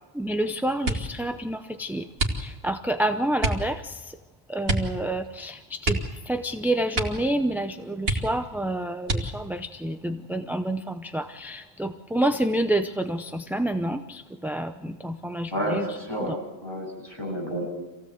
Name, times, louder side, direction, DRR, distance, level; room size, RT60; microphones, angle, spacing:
voice 1, 0.2-2.1 2.4-3.9 4.5-6.0 6.3-15.9 16.3-16.4, right 1 dB, ahead, 7 dB, 0.5 m, -28 dB
sound 1, 0.8-1.2 2.1-2.8 3.4-3.7 4.6-5.0 5.2-5.3 5.8-6.6 6.9-7.3 7.6-7.7 8.0-8.6 9.0-9.6 10.3-10.9 11.3-11.7, right 2 dB, 65° right, 2.5 m, -28 dB
voice 2, 15.5-17.7, equal, 20° left, -2 dB, 8.2 m, -30 dB
26.5 x 16.5 x 7.9 m, 1.1 s
omnidirectional pair, 1.1 m